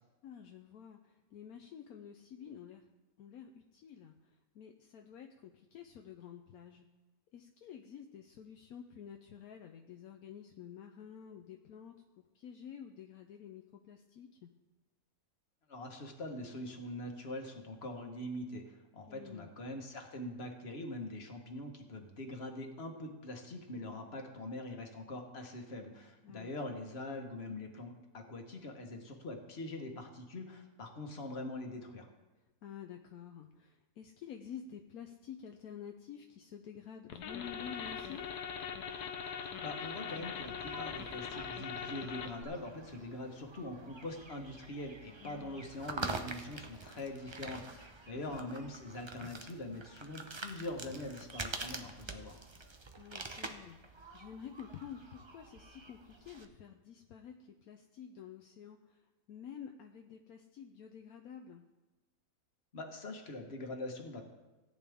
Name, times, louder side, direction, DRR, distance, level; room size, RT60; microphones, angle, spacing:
voice 1, 0.2-2.9 3.2-4.2 4.5-6.9 7.3-14.5 19.1-19.5 26.2-26.5 32.6-38.3 45.2-45.7 48.1-48.6 53.0-59.0 59.3-61.6, left 8 dB, 75° left, 4 dB, 1.1 m, -50 dB
voice 2, 15.7-32.1 39.6-52.4 62.7-64.2, left 1 dB, 45° left, 3 dB, 1.5 m, -43 dB
sound 1, 37.1-42.4, left 7 dB, 90° left, 1.4 m, -41 dB
sound 2, 37.4-56.4, right 3 dB, 35° right, 0.4 m, -47 dB
17.0 x 9.0 x 3.6 m, 1.2 s
omnidirectional pair, 1.6 m